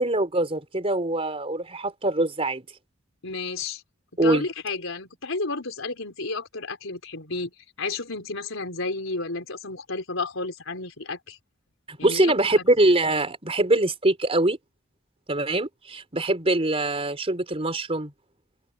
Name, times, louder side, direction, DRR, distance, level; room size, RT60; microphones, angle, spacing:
voice 1, 0.0-2.6 4.2-4.4 11.9-14.6 15.3-18.1, right 2 dB, 30° right, 4.2 m, -23 dB
voice 2, 3.2-3.8 4.2-7.5 7.8-11.4 12.0-12.6, left 3 dB, 75° left, 4.3 m, -32 dB
open air
head